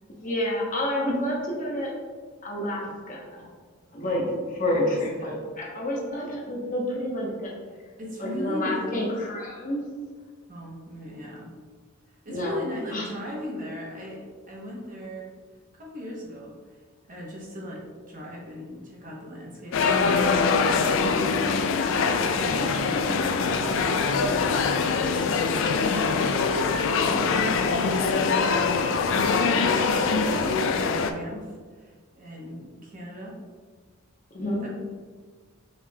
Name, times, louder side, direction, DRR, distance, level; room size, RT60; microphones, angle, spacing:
voice 1, 0.2-1.9 2.4-3.5 3.9-7.5 8.2-9.8 12.3-12.6 12.9-13.1 22.5-22.7 23.0-23.2 34.3-34.7, left 1 dB, 35° left, -3 dB, 0.8 m, -29 dB
voice 2, 4.7-5.4 8.0-9.1 10.5-11.5 12.1-15.3 15.8-16.5 17.1-21.7 22.2-23.2 24.4-28.2 28.8-29.0 29.5-33.4 34.6-34.7, left 1 dB, 35° right, -3 dB, 0.8 m, -38 dB
sound 1, 19.7-31.1, left 4 dB, 60° left, 0.3 m, -23 dB
5.7 x 3.3 x 2.2 m, 1.6 s
head